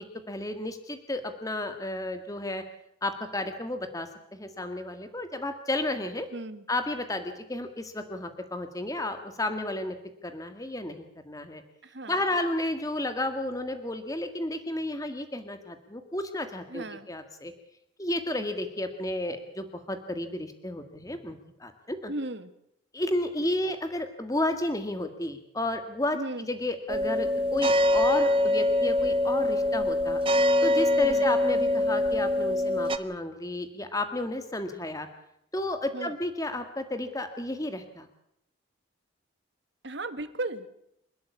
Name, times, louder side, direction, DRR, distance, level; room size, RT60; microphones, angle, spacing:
voice 1, 0.0-2.6 3.0-6.3 6.7-10.0 10.2-11.6 12.1-17.5 18.0-22.1 22.9-26.2 26.5-30.2 30.6-35.1 35.5-38.1, left 1 dB, 15° left, 8 dB, 1.8 m, -32 dB
voice 2, 6.3-6.6 11.8-12.2 16.7-17.1 22.1-22.5 26.1-26.5 31.0-31.3 35.9-36.1 39.8-40.7, right 2 dB, 60° right, 11 dB, 1.8 m, -36 dB
sound 1, 26.9-33.0, left 1 dB, 25° right, 1.2 m, -24 dB
28.5 x 13.0 x 8.4 m, 0.77 s
head